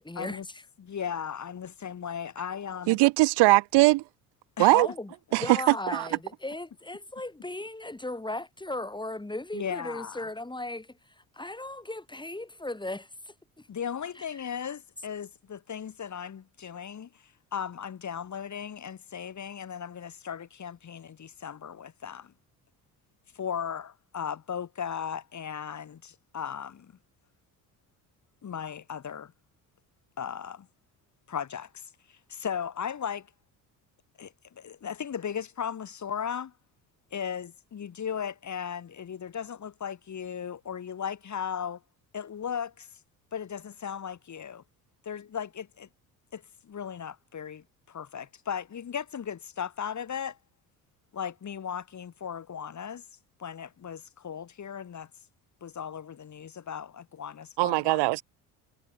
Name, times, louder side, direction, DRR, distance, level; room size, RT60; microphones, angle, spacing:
voice 1, 0.0-0.6 4.7-13.7 14.2-14.3, left 2 dB, 10° left, 5.8 m, -37 dB
voice 2, 0.8-3.0 4.6-4.7 9.5-10.3 13.7-17.1 17.5-22.3 23.3-26.9 28.4-29.3 30.2-30.7 31.3-31.8 32.1-33.3 34.2-36.5 37.1-41.8 42.1-42.9 43.3-44.6 45.0-45.9 46.3-50.4 51.1-53.0 53.4-55.1 55.6-58.2, left 8 dB, 40° left, 2.9 m, -36 dB
voice 3, 2.9-4.0 4.6-4.9 5.3-5.6 5.9-6.0 57.6-58.2, right 22 dB, 75° right, 2.0 m, -21 dB
supercardioid pair, 70°, 42 cm